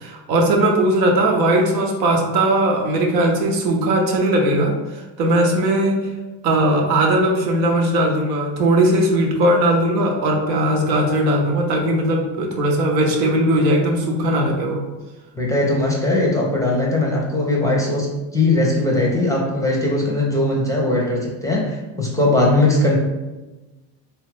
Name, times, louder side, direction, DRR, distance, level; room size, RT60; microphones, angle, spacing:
voice 1, 0.0-6.1 6.4-14.8, right 1 dB, 90° right, 1 dB, 0.8 m, -18 dB
voice 2, 15.3-18.1 18.3-23.0, left 2 dB, 5° left, -3 dB, 0.4 m, -19 dB
2.7 x 2.4 x 3.2 m, 1.1 s
supercardioid pair, 95°, 48 cm